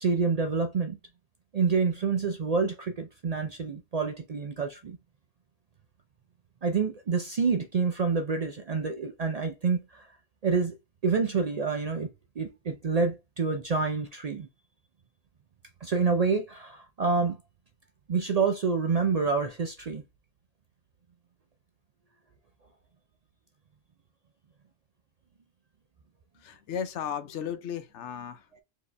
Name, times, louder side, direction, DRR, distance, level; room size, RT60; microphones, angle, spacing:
voice 1, 0.0-1.0 1.5-5.0 6.6-10.1 10.4-10.7 11.0-12.1 12.4-14.5 15.8-17.4 18.1-20.0, right 5 dB, 55° right, 0.4 m, -27 dB
voice 2, 26.3-28.6, left 8 dB, 85° left, 1.0 m, -35 dB
4.5 x 2.9 x 3.2 m
omnidirectional pair, 1.2 m